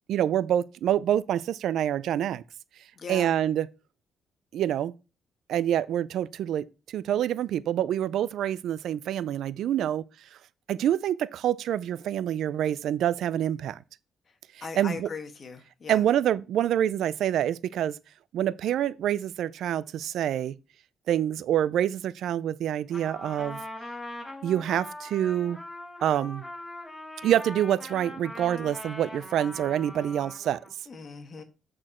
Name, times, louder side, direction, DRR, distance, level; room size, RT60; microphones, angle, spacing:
voice 1, 0.1-2.4 3.1-3.7 4.5-4.9 5.5-10.0 10.7-13.8 14.6-15.1 15.9-18.0 18.3-20.6 21.1-23.6 24.4-25.6 26.0-26.4 27.2-30.6, right 11 dB, 80° right, 0.3 m, -26 dB
voice 2, 3.0-3.3 14.6-16.0 30.9-31.4, left 5 dB, 45° left, 1.4 m, -39 dB
Trumpet, 22.9-30.7, left 1 dB, 10° left, 4.7 m, -41 dB
8.1 x 4.4 x 4.3 m
cardioid pair, 115°, 0 cm